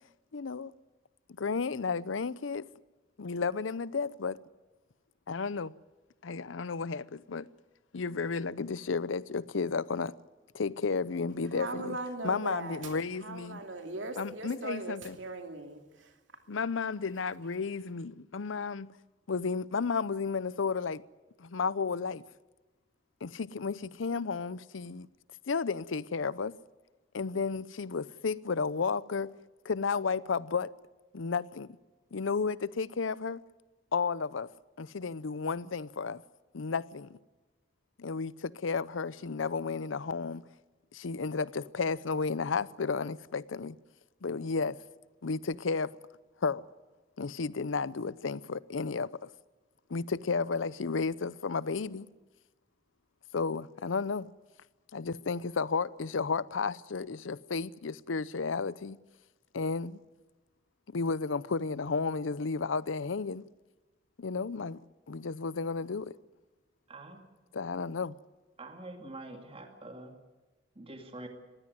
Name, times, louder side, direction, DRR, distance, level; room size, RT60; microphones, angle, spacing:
voice 1, 0.3-0.7 1.4-2.7 3.2-4.4 5.3-5.7 6.2-7.5 7.9-10.1 10.5-12.0 12.2-13.6 14.2-15.2 16.5-18.9 19.3-21.0 21.4-22.2 23.2-25.1 25.5-26.5 27.1-29.3 29.6-30.7 31.1-31.8 32.1-33.4 33.9-34.5 34.8-36.2 36.5-37.2 38.0-40.4 40.9-43.8 44.2-44.8 45.2-45.9 46.4-46.6 47.2-49.3 49.9-52.1 53.3-54.3 54.9-59.0 59.5-60.0 60.9-63.5 64.2-64.8 65.1-66.2 67.5-68.2, left 4 dB, 90° left, 0.6 m, -32 dB
voice 2, 11.5-12.9 13.2-16.1, right 2 dB, 75° right, 2.7 m, -39 dB
voice 3, 66.9-67.3 68.6-70.1 70.8-71.3, right 2 dB, 30° right, 2.2 m, -45 dB
20.5 x 16.0 x 9.4 m
head